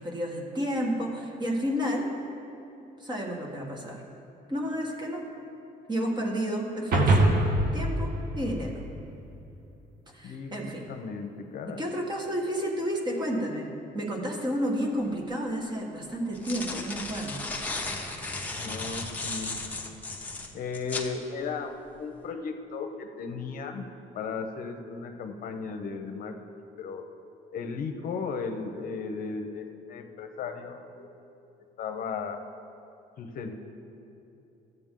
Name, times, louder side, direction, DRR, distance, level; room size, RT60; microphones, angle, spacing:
voice 1, 0.0-2.1 3.0-4.0 4.5-5.2 5.9-7.3 7.7-8.9 10.1-10.9 11.7-17.4, equal, 25° right, 0 dB, 1.5 m, -31 dB
sound 1, 6.9-9.4, right 1 dB, 60° right, 1.3 m, -24 dB
voice 2, 10.9-11.8 18.6-19.5 20.5-21.7 22.0-23.8 24.1-26.3 26.8-27.0 27.5-31.1 31.8-32.4 33.2-33.5, left 5 dB, 55° left, 5 dB, 0.8 m, -35 dB
sound 2, 15.1-15.2 16.1-21.1, left 2 dB, 10° left, 1.0 m, -35 dB
13.5 x 7.9 x 3.8 m, 2.9 s
cardioid pair, 110°, 17 cm